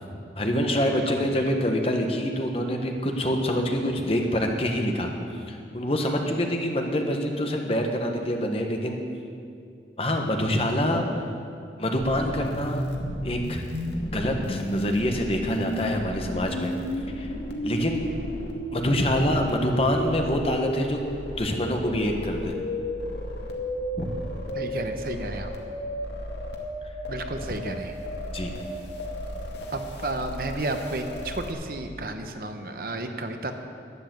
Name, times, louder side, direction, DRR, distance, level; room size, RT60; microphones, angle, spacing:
voice 1, 0.4-5.1 5.5-9.0 10.0-11.1 11.8-12.9 13.2-13.6 14.1-16.8 17.1-17.3 17.6-18.0 18.7-21.0 21.4-22.6 24.0-24.1 28.3-28.5, equal, 35° left, 3 dB, 1.3 m, -26 dB
voice 2, 0.9-1.4 24.5-25.5 27.1-28.0 29.7-33.5, right 2 dB, 55° right, 6 dB, 1.0 m, -32 dB
sound 1, 12.0-31.5, equal, 85° left, 1.9 m, -33 dB
12.5 x 9.8 x 7.7 m, 2.4 s
head